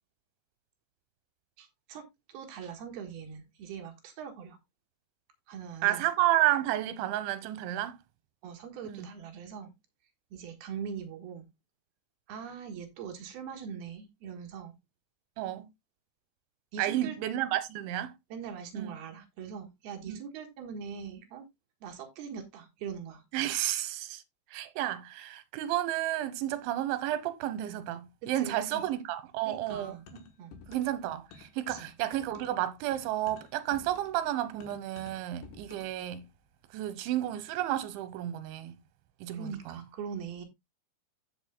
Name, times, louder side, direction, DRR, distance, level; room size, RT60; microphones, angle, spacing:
voice 1, 1.6-4.6 5.5-6.1 8.4-9.7 10.3-11.5 12.3-14.8 16.7-17.2 18.3-21.4 21.8-23.2 28.2-28.8 29.5-30.1 30.4-30.6 31.7-31.9 39.3-40.4, right 7 dB, 65° right, 3.1 m, -42 dB
voice 2, 5.8-8.0 8.8-9.1 15.4-15.7 16.8-18.1 18.7-18.9 20.1-20.2 23.3-24.2 24.5-30.3 30.7-36.3 36.7-38.8 39.2-39.8, right 13 dB, 85° right, 3.3 m, -31 dB
sound 1, 29.7-31.0 31.3-36.0, left 5 dB, 70° left, 3.5 m, -52 dB
14.5 x 6.4 x 2.2 m
omnidirectional pair, 5.3 m